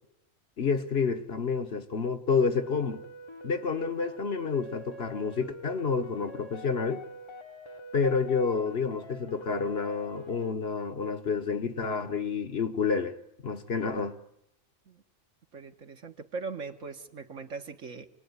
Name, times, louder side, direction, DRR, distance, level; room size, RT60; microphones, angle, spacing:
voice 1, 0.6-3.0 3.4-7.0 7.9-13.1 13.4-14.2, left 5 dB, 50° left, 1.4 m, -29 dB
sound 1, 2.5-10.5, left 1 dB, 25° left, 1.0 m, -46 dB
voice 2, 15.5-18.1, right 4 dB, 65° right, 1.8 m, -40 dB
28.0 x 20.0 x 9.7 m
omnidirectional pair, 1.4 m